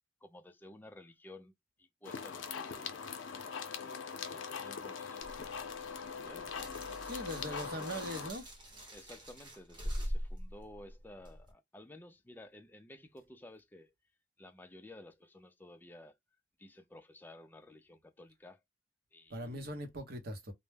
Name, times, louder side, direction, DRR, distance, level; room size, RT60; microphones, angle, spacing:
voice 1, 0.2-2.9 3.8-4.0 4.3-5.5 6.0-6.9 7.4-8.0 8.9-13.9 14.4-16.2 16.6-18.6 19.1-19.9, left 1 dB, 10° left, 0.4 m, -54 dB
sound 1, 2.0-8.3, left 6 dB, 85° left, 0.5 m, -42 dB
sound 2, 5.2-11.5, equal, 25° right, 0.8 m, -43 dB
voice 2, 7.0-8.4 19.3-20.5, equal, 55° right, 0.7 m, -41 dB
2.2 x 2.0 x 3.2 m
head